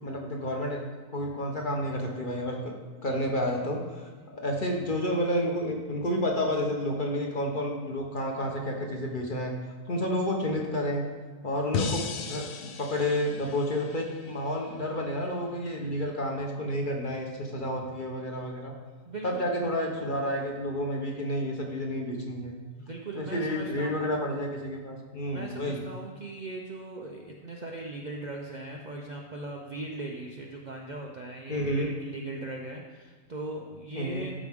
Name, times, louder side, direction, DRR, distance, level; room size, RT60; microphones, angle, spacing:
voice 1, 0.0-0.8 1.1-2.7 3.0-9.5 9.9-11.0 11.4-18.7 19.2-22.5 23.1-25.8 31.5-31.9 33.9-34.3, equal, 35° left, 1 dB, 1.0 m, -30 dB
sound 1, 11.7-14.9, left 5 dB, 65° left, 0.5 m, -35 dB
voice 2, 19.1-19.5 22.8-24.2 25.3-34.3, right 2 dB, 80° right, 0 dB, 0.4 m, -39 dB
12.5 x 4.8 x 3.6 m, 1.4 s
omnidirectional pair, 1.8 m